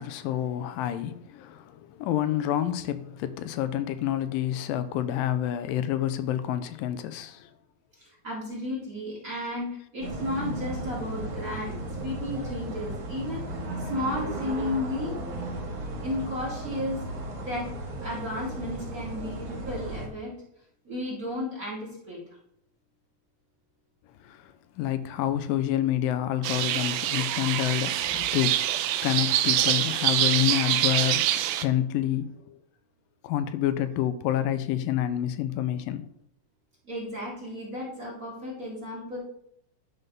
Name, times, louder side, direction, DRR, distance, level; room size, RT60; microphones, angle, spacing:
voice 1, 0.0-7.5 24.2-28.7 29.0-32.6 33.2-36.0, left 11 dB, 85° left, 2.3 m, -28 dB
voice 2, 8.0-11.8 12.0-15.1 16.0-17.0 17.5-17.7 18.0-20.4 20.8-22.4 36.8-39.2, left 1 dB, 30° right, 1.9 m, -33 dB
sound 1, 10.0-20.1, right 1 dB, 65° right, 3.0 m, -35 dB
sound 2, 26.4-31.6, right 12 dB, 90° right, 2.4 m, -25 dB
11.0 x 3.9 x 5.3 m
omnidirectional pair, 3.9 m